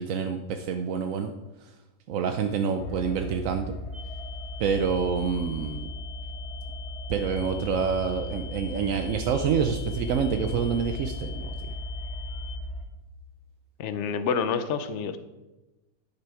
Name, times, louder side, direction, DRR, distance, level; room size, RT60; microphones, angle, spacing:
voice 1, 0.0-1.3 2.1-3.7 4.6-5.9 7.1-11.5, right 6 dB, 65° right, 6 dB, 0.8 m, -27 dB
sound 1, 2.8-12.8, equal, 40° left, 1.6 m, -37 dB
sound 2, 3.9-12.5, left 9 dB, 85° right, 2.6 m, -45 dB
voice 2, 13.8-15.2, left 6 dB, 65° left, 10 dB, 0.7 m, -28 dB
10.0 x 6.8 x 4.8 m, 1.1 s
omnidirectional pair, 1.9 m